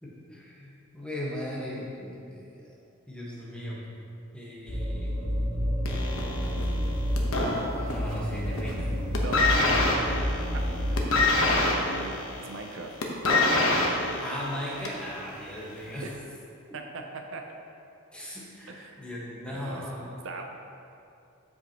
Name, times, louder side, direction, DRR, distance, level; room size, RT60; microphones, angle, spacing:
voice 1, 0.0-2.7 3.1-3.8 4.3-5.6 7.7-9.1 9.6-9.7 14.2-16.1 18.1-20.2, equal, 5° left, -6 dB, 1.4 m, -37 dB
sound 1, 4.7-11.3, equal, 25° left, 1.8 m, -30 dB
sound 2, 5.9-8.2 8.5-8.8 9.1-15.1 15.9-16.0, left 2 dB, 75° left, 1.1 m, -26 dB
voice 2, 9.2-9.7 10.5-10.6 10.9-12.9 15.9-16.1 16.7-17.0 17.3-17.4 18.7-19.0 19.5-19.8 20.2-20.4, right 3 dB, 60° right, 3 dB, 0.6 m, -39 dB
12.5 x 5.5 x 3.0 m, 2.6 s
head